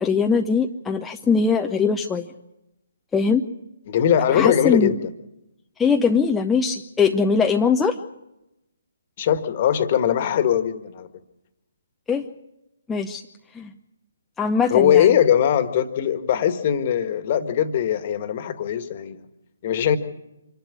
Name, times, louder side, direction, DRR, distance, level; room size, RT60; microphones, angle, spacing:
voice 1, 0.0-2.3 3.1-3.4 4.3-4.9 5.8-8.0 12.1-12.2 12.9-13.2 13.5-13.7 14.4-15.1, left 5 dB, 10° left, 3 dB, 0.7 m, -21 dB
voice 2, 3.9-5.0 9.2-11.1 14.7-19.2 19.6-20.0, left 9 dB, 40° left, 10 dB, 1.6 m, -20 dB
26.0 x 11.5 x 9.8 m, 0.91 s
figure-of-eight pair, 140°, 0 cm